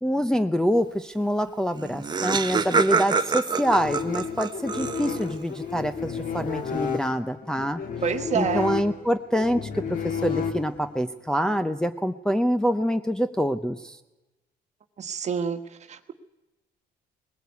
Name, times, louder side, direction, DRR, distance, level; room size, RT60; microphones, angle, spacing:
voice 1, 0.0-7.8 8.3-14.0, equal, 5° left, 6 dB, 0.7 m, -26 dB
Laughter, 1.5-1.6 1.8-5.4, right 4 dB, 25° right, 0.9 m, -26 dB
sound 1, 3.6-11.0, left 7 dB, 55° left, 2.2 m, -32 dB
voice 2, 8.0-8.8 15.0-15.6 15.9-16.1, right 7 dB, 45° right, 9 dB, 1.4 m, -27 dB
19.5 x 16.0 x 8.3 m, 1.0 s
cardioid pair, 110°, 17 cm